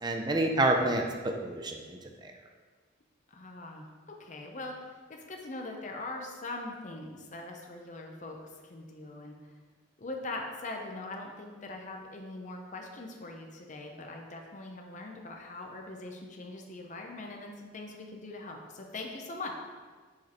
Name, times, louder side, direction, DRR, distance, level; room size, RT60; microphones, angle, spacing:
voice 1, 0.0-2.3, right 2 dB, 20° right, 3 dB, 0.5 m, -29 dB
voice 2, 3.3-3.9 4.2-9.5 10.0-19.6, left 2 dB, 40° left, 1 dB, 0.6 m, -42 dB
4.9 x 4.7 x 4.2 m, 1.5 s
head